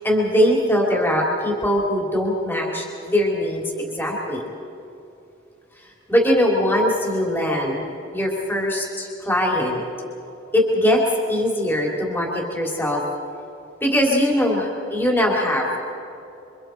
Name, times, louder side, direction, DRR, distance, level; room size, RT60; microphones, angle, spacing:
voice 1, 0.0-4.4 6.1-7.8 8.1-9.8 10.5-11.0 11.3-13.0 13.8-15.8, equal, 10° left, -2 dB, 3.1 m, -21 dB
27.5 x 25.5 x 4.5 m, 2.8 s
head